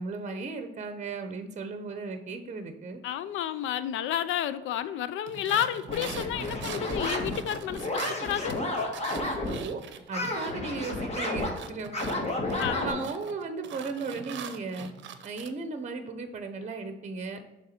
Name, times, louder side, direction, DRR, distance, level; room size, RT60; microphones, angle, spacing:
voice 1, 0.0-3.0 9.2-9.8 10.1-14.9 15.2-17.4, right 4 dB, 35° right, 8 dB, 0.8 m, -36 dB
voice 2, 3.0-8.6 12.6-13.1, left 10 dB, 80° left, 14 dB, 0.5 m, -31 dB
sound 1, 5.3-10.5 10.8-15.5, right 8 dB, 70° right, 0.6 m, -42 dB
sound 2, 5.9-9.6 10.1-12.9, left 2 dB, 35° left, 1.5 m, -31 dB
6.6 x 3.6 x 4.4 m, 1.0 s
cardioid pair, 90°, 20 cm